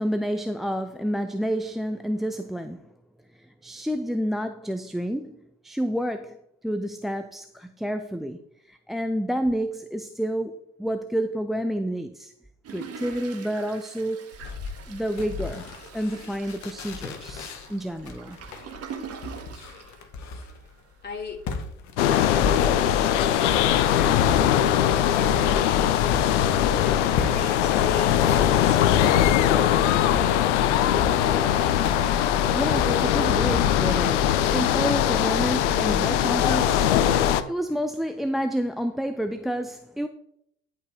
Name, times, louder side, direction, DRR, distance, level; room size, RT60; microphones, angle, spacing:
voice 1, 0.0-2.9 3.3-12.3 12.7-14.4 14.9-15.7 15.9-18.4 32.5-40.1, equal, ahead, 0.4 m, -29 dB
Toilet flush, 12.6-20.7 21.2-21.3 21.4-21.5, right 6 dB, 40° right, 1.7 m, -43 dB
sound 1, 14.3-23.1 23.4-33.6, left 4 dB, 45° left, 1.6 m, -36 dB
voice 2, 21.0-21.4 22.1-25.8 26.7-29.2, left 4 dB, 25° left, 3.1 m, -38 dB
sound 2, 22.0-37.4, left 10 dB, 65° left, 0.8 m, -21 dB
11.0 x 5.3 x 4.7 m
figure-of-eight pair, 65°, 39 cm